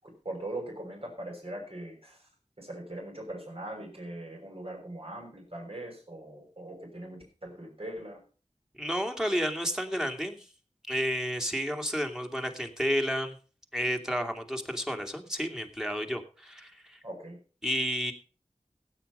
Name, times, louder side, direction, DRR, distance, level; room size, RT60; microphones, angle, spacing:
voice 1, 0.0-2.3 2.6-8.2 17.0-17.4, right 1 dB, 50° right, 1 dB, 6.2 m, -41 dB
voice 2, 8.8-10.5 10.9-13.3 13.7-17.0 17.6-18.1, equal, 5° right, 3 dB, 2.5 m, -31 dB
16.0 x 9.2 x 5.5 m, 0.38 s
wide cardioid pair, 50°, 13 cm